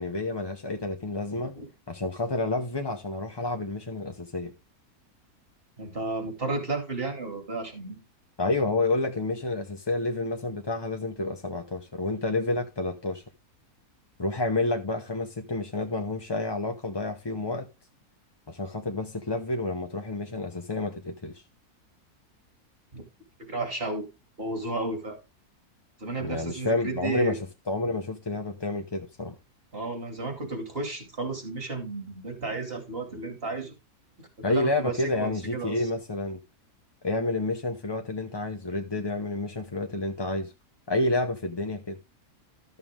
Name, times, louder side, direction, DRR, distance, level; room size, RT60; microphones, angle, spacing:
voice 1, 0.0-1.6 1.9-4.5 8.4-13.2 14.2-17.7 18.5-21.4 26.2-27.4 27.7-29.4 34.4-36.4 37.0-40.5 40.9-42.0, left 2 dB, 25° left, 0.6 m, -29 dB
voice 2, 5.8-8.1 22.9-23.0 23.4-24.0 24.4-25.2 26.0-27.3 29.7-33.7 34.5-35.9, right 3 dB, 40° right, 2.8 m, -33 dB
13.0 x 6.7 x 3.7 m
omnidirectional pair, 1.6 m